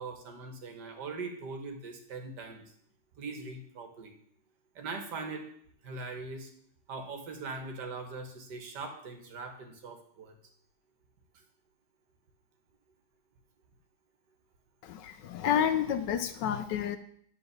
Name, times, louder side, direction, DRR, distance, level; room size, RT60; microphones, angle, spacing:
voice 1, 0.0-2.6 3.2-4.1 4.8-5.4 5.8-6.5 6.9-10.4, right 3 dB, 55° right, 5 dB, 1.7 m, -41 dB
voice 2, 14.8-17.0, left 9 dB, 75° left, 10 dB, 1.1 m, -30 dB
10.0 x 4.1 x 6.7 m, 0.66 s
omnidirectional pair, 2.3 m